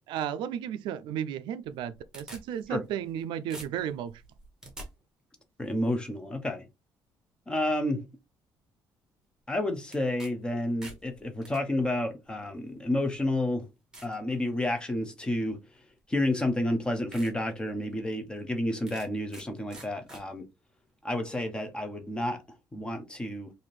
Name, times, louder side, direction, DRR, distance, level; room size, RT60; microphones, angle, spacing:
voice 1, 0.1-4.2, right 9 dB, 75° right, 0.4 m, -34 dB
sound 1, 1.7-3.2 3.5-4.9 9.9-10.3 10.6-11.6 12.5-12.6 13.2-13.3 13.9-14.2 14.7-15.0 16.2-16.3 16.7-16.8 17.1-17.3 17.8-17.9 18.9-19.5 19.7-20.2, right 2 dB, 10° right, 0.9 m, -46 dB
voice 2, 5.6-6.6 7.5-8.0 9.5-13.7 14.0-15.6 16.1-20.4 21.0-22.4 22.7-23.5, left 1 dB, 10° left, 0.6 m, -30 dB
4.1 x 2.5 x 3.1 m
cardioid pair, 175°, 8 cm